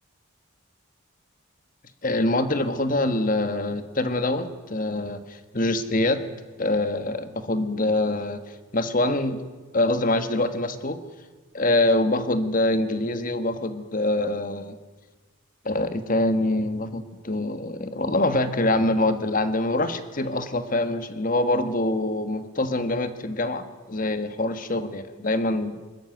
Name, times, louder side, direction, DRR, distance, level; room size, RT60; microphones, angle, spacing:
voice 1, 2.0-6.2 6.6-8.4 8.7-9.4 9.7-11.0 11.5-14.8 15.6-25.8, left 2 dB, 40° left, 10 dB, 1.4 m, -25 dB
25.0 x 14.0 x 9.2 m, 1.3 s
head